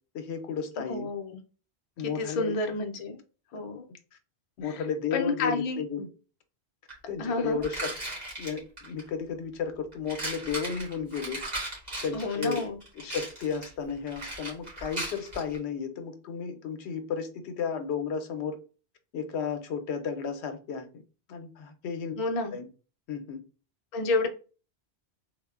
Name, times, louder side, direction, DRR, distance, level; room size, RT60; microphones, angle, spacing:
voice 1, 0.1-1.1 2.0-2.6 3.5-3.6 4.6-6.1 7.1-7.9 8.4-11.4 12.0-12.6 13.0-18.6 19.1-20.9 21.3-22.1 22.5-22.7 23.1-23.4, left 6 dB, 85° left, 0.9 m, -33 dB
voice 2, 0.9-1.4 2.0-3.2 3.5-3.8 4.6-4.8 5.1-5.8 7.2-7.6 12.1-12.8 22.2-22.6 23.9-24.3, left 3 dB, 50° left, 0.4 m, -30 dB
sound 1, 6.9-7.0 7.6-9.1 9.9-15.6, right 1 dB, 40° right, 1.4 m, -37 dB
3.5 x 2.0 x 2.3 m
omnidirectional pair, 1.1 m